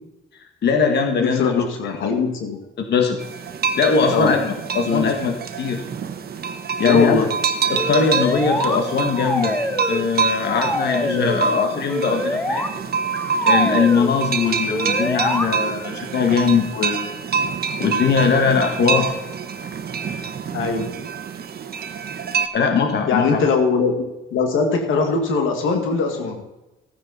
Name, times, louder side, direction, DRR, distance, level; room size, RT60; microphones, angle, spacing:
voice 1, 0.6-2.1 2.8-3.2 3.8-5.8 6.8-7.3 7.7-9.6 9.9-12.6 13.4-17.1 17.8-19.1 22.5-23.4, left 5 dB, 60° left, 4 dB, 1.8 m, -20 dB
voice 2, 1.2-2.6 4.1-4.3 4.9-5.1 6.8-7.3 11.0-11.3 20.5-20.9 23.1-26.4, left 4 dB, 85° left, 4 dB, 2.1 m, -21 dB
sound 1, 3.2-22.5, right 5 dB, 50° right, 1.2 m, -26 dB
sound 2, 7.7-8.8 9.1-10.1 10.4-11.4 11.9-12.7 13.1-14.1 14.7-15.5, left 1 dB, 10° left, 1.4 m, -25 dB
15.5 x 9.6 x 4.1 m, 1.0 s
cardioid pair, 90°, 20 cm